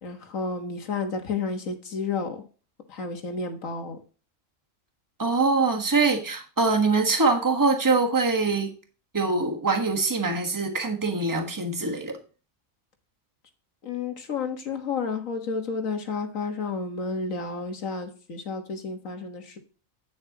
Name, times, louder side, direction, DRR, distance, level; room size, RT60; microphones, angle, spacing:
voice 1, 0.0-2.4 2.9-4.0 13.8-19.6, left 4 dB, 75° left, 1.8 m, -31 dB
voice 2, 5.2-8.7 9.1-12.2, right 3 dB, 15° right, 1.4 m, -23 dB
9.7 x 7.1 x 2.9 m
omnidirectional pair, 1.4 m